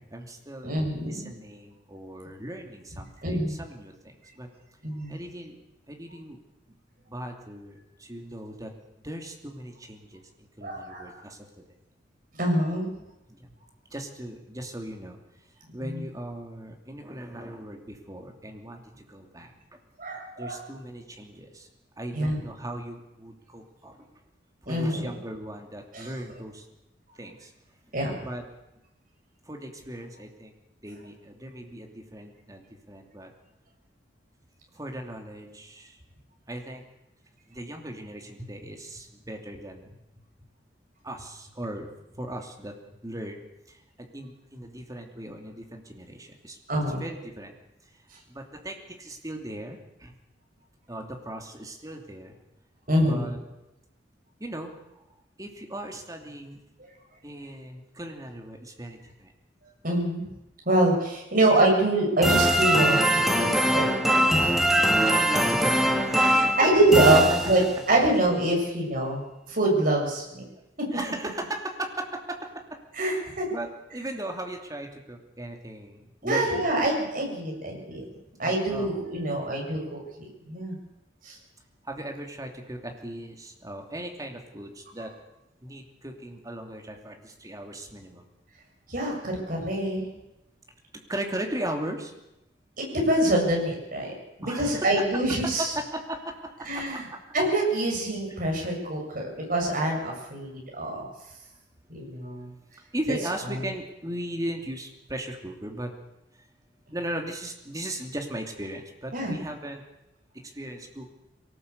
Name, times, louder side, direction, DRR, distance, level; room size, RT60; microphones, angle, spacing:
voice 1, 0.0-0.7 1.0-4.5 5.1-5.6 5.9-6.4 7.1-8.7 9.0-10.2 10.6-11.4 13.3-13.5 13.9-15.2 15.7-19.8 20.4-21.7 22.0-24.0 24.6-26.6 27.2-27.5 28.2-28.4 29.5-30.5 30.8-33.3 34.7-36.0 36.5-36.8 37.5-39.9 41.0-42.7 43.0-43.4 43.7-43.8 44.1-46.6 46.9-47.5 48.3-50.2 50.9-52.4 53.0-53.4 54.4-54.7 55.4-56.6 57.2-59.3 65.0-66.5 70.9-72.4 73.0-73.1 73.5-76.7 78.4-78.9 79.3-79.5 81.8-85.1 85.6-88.2 90.9-92.1 94.4-94.9 95.4-97.0 102.9-105.9 106.9-109.8 110.5-111.1, right 1 dB, 20° right, 2 dB, 2.9 m, -37 dB
voice 2, 0.6-1.3 3.2-3.5 4.8-5.2 10.6-11.1 12.4-12.9 15.8-16.0 20.0-20.6 22.1-22.4 24.7-25.1 25.9-26.1 27.9-28.2 46.7-47.0 52.9-53.3 59.8-60.2 60.7-64.7 66.1-67.6 67.9-69.2 69.5-70.4 72.9-73.5 76.2-78.1 78.4-80.8 81.2-81.4 88.9-90.1 92.8-94.1 94.4-95.7 96.6-97.1 97.3-101.1 101.9-102.5 103.5-103.6 109.1-109.3, right 1 dB, 50° right, 0 dB, 7.2 m, -25 dB
sound 1, 62.2-67.9, right 1 dB, ahead, 1.8 m, -22 dB
23.0 x 18.5 x 8.3 m, 0.91 s
head